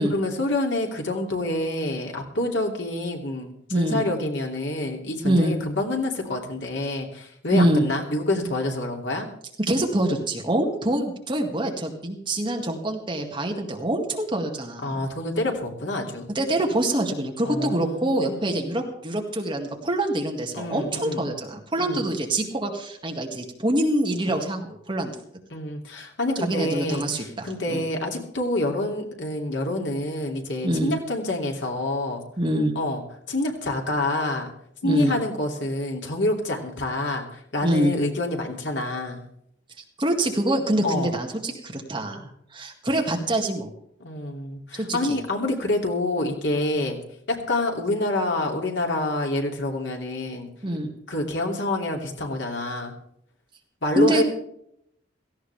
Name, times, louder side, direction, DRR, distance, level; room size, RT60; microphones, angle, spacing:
voice 1, 0.0-9.3 14.8-16.3 17.4-18.5 20.5-21.2 21.8-22.0 25.5-32.2 32.7-33.0 33.3-34.5 34.8-39.2 40.8-41.1 44.0-47.0 47.3-50.5 51.1-52.9 53.8-54.2, left 1 dB, 75° left, 1 dB, 2.8 m, -27 dB
voice 2, 3.7-4.0 5.2-5.5 7.5-7.8 9.6-15.1 16.3-25.1 26.4-27.8 30.6-30.9 32.4-32.7 34.8-35.1 37.6-37.9 40.0-43.7 44.8-45.2 46.7-46.9 50.6-50.9 54.0-54.2, right 1 dB, 25° right, 2 dB, 2.1 m, -25 dB
17.5 x 15.5 x 3.5 m, 0.72 s
head